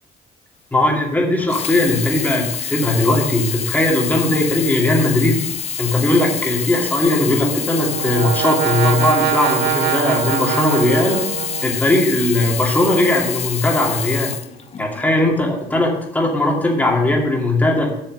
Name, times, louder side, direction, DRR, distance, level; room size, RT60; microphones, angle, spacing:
voice 1, 0.7-5.4 5.8-11.2 11.6-14.3 14.8-17.9, left 1 dB, 10° left, -1 dB, 2.5 m, -18 dB
Sink (filling or washing), 1.4-15.2 15.9-16.0, left 7 dB, 40° left, 0.7 m, -27 dB
Brass instrument, 7.3-12.1, right 14 dB, 75° right, 0.4 m, -24 dB
7.9 x 6.4 x 6.3 m, 0.84 s
cardioid pair, 110°, 17 cm